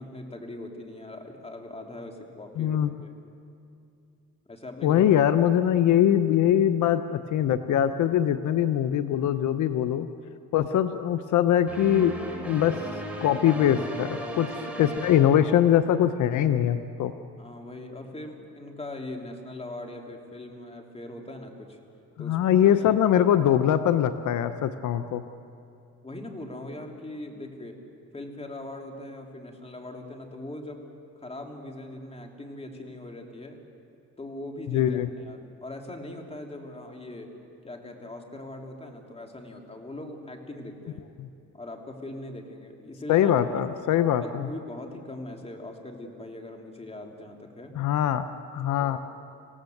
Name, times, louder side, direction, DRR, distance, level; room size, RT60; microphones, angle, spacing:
voice 1, 0.0-3.1 4.5-5.0 17.4-21.8 22.2-22.9 26.0-27.8 28.1-30.9 31.2-33.6 34.2-37.3 37.6-41.1 41.5-43.3 44.2-47.8 48.8-49.0, left 1 dB, 20° left, 2 dB, 3.1 m, -40 dB
voice 2, 2.6-2.9 4.8-10.1 10.5-12.1 12.4-12.8 13.2-14.5 14.8-17.1 22.2-25.2 34.7-35.1 41.2-41.3 43.1-44.5 47.8-48.3 48.5-49.0, left 10 dB, 75° left, 10 dB, 0.9 m, -22 dB
sound 1, 11.7-16.1, right 1 dB, 5° right, 4.7 m, -36 dB
27.0 x 17.0 x 7.9 m, 2.5 s
cardioid pair, 90°, 30 cm